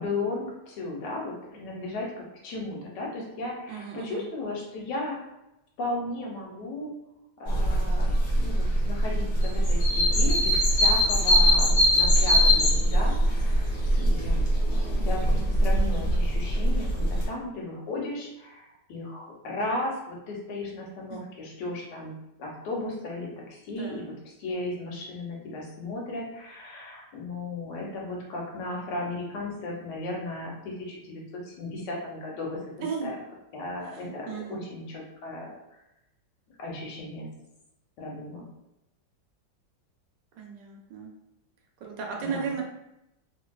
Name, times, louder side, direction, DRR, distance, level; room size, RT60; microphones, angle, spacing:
voice 1, 0.0-5.2 5.8-6.9 7.4-14.4 15.0-22.1 22.4-32.6 33.0-33.1 33.5-35.8 36.6-37.3 38.0-38.5 42.2-42.6, left 2 dB, 80° left, -2 dB, 1.4 m, -35 dB
voice 2, 3.7-4.2 21.1-21.2 23.8-24.0 32.8-33.1 33.9-34.6 40.4-41.1 41.8-42.6, right 6 dB, 85° right, 0 dB, 1.3 m, -35 dB
sound 1, 7.5-17.2, equal, 50° left, 0.9 m, -22 dB
3.1 x 2.6 x 2.3 m, 0.89 s
omnidirectional pair, 1.9 m